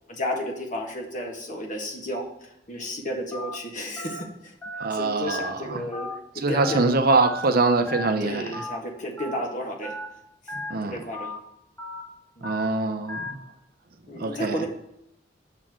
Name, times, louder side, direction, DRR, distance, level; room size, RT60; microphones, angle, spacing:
voice 1, 0.1-4.3 4.9-6.1 6.5-6.8 8.2-9.9 10.8-11.3 12.4-12.5 14.1-14.7, left 1 dB, 45° left, 1.5 m, -32 dB
Telephone, 3.3-3.5 4.0-4.2 4.6-4.8 5.3-5.5 5.9-6.2 6.6-6.8 7.2-7.5 7.9-8.1 8.5-8.8 9.2-9.4 9.8-10.1 10.5-10.7 11.1-11.4 11.8-12.0 12.4-12.7 13.1-13.3, left 2 dB, 10° left, 1.7 m, -35 dB
voice 2, 4.8-5.8 6.4-8.6 10.7-11.0 12.4-13.4 14.2-14.6, right 3 dB, 55° right, 0.7 m, -24 dB
7.2 x 4.3 x 6.2 m
head